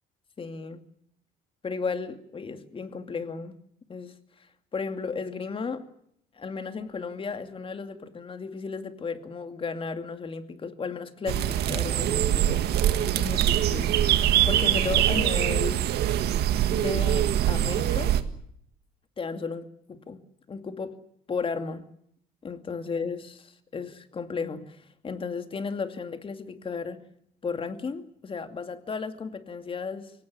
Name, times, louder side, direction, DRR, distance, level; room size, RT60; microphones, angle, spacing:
voice 1, 0.4-0.8 1.6-3.6 3.9-4.1 4.7-5.9 6.3-12.9 13.2-15.8 16.7-18.2 19.2-20.2 20.5-21.0 21.3-21.8 22.4-27.0 27.4-30.1, left 5 dB, 30° left, 8 dB, 2.4 m, -34 dB
sound 1, 11.3-18.2, right 11 dB, 75° right, 1.7 m, -23 dB
23.5 x 18.0 x 10.0 m, 0.70 s
cardioid pair, 110°, 17 cm